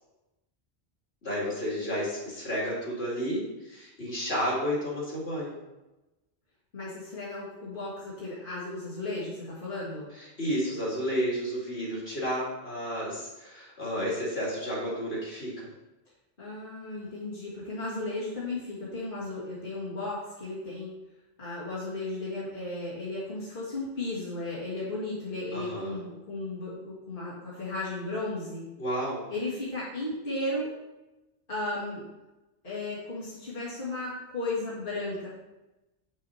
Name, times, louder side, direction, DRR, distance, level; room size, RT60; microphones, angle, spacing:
voice 1, 1.2-5.5 10.2-15.7 25.5-25.9 28.8-29.2, equal, 70° left, -6 dB, 3.1 m, -31 dB
voice 2, 6.7-10.1 16.4-20.9 21.4-28.6 29.3-30.7 31.5-32.1 32.6-35.3, left 2 dB, 55° left, -9 dB, 2.2 m, -35 dB
8.1 x 6.5 x 4.3 m, 1.0 s
omnidirectional pair, 1.1 m